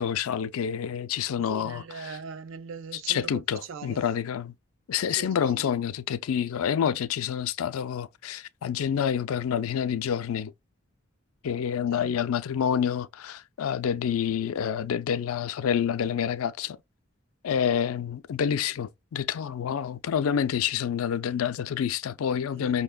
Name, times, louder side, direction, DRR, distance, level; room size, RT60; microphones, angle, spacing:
voice 1, 0.0-1.8 3.1-4.5 4.9-10.5 11.4-16.8 17.4-22.8, left 8 dB, 85° left, 0.4 m, -28 dB
voice 2, 1.4-4.0 5.1-5.6 11.9-12.2 22.5-22.8, right 5 dB, 65° right, 0.4 m, -41 dB
5.5 x 2.2 x 2.2 m
head